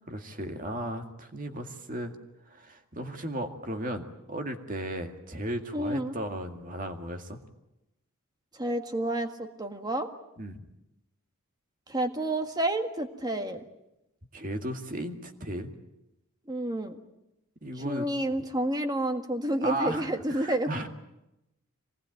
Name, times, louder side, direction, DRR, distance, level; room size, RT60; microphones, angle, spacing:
voice 1, 0.1-2.1 2.5-7.4 10.4-10.7 14.3-15.7 17.6-18.1 19.6-20.9, right 1 dB, 40° right, 5 dB, 2.0 m, -35 dB
voice 2, 5.7-6.2 8.5-10.1 11.9-13.6 16.5-17.0 17.8-20.9, right 1 dB, 20° right, 6 dB, 1.7 m, -30 dB
24.5 x 19.0 x 9.3 m, 0.91 s
head